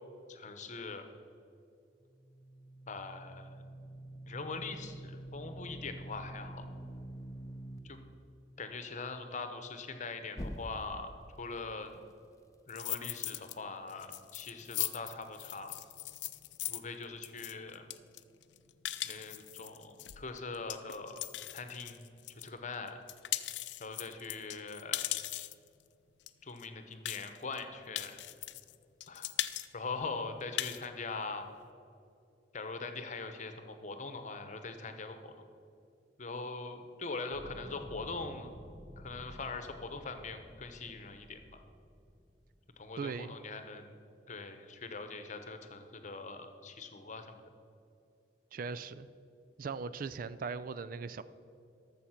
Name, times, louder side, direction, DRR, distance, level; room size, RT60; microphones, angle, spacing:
voice 1, 0.3-1.0 2.9-3.6 4.2-6.7 7.8-8.0 8.6-12.0 12.7-15.7 16.7-17.9 19.0-21.2 21.5-22.0 22.4-23.0 23.8-25.1 26.4-28.2 29.1-29.3 29.7-31.5 32.5-35.3 36.2-38.5 39.0-41.6 42.8-43.9 44.3-47.4, left 3 dB, 45° left, 8 dB, 1.0 m, -42 dB
sound 1, 2.0-7.8 10.3-11.1, right 1 dB, 20° left, 0.7 m, -46 dB
sound 2, 12.7-13.6 13.9-22.5 22.9-25.7 26.3-26.4 26.6-26.7 27.1-27.6 28.0-28.8 29.0-29.7 30.0-30.1 30.4-30.9, left 15 dB, 80° left, 0.4 m, -39 dB
sound 3, 37.3-43.0, equal, ahead, 1.2 m, -52 dB
voice 2, 43.0-43.4 48.5-49.1 49.6-51.2, right 5 dB, 50° right, 14 dB, 0.4 m, -39 dB
12.5 x 7.1 x 5.8 m, 2.6 s
head